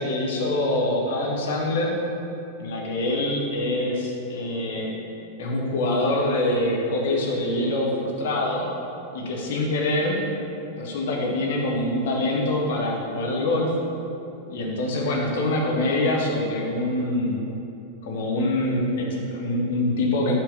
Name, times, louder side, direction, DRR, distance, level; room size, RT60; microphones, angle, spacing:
voice 1, 0.0-2.0 2.6-4.9 5.4-8.7 9.1-10.2 10.8-13.7 14.5-17.4 18.0-20.3, left 1 dB, 55° left, -1 dB, 1.0 m, -25 dB
5.6 x 3.7 x 5.1 m, 2.8 s
figure-of-eight pair, 90°, 0 cm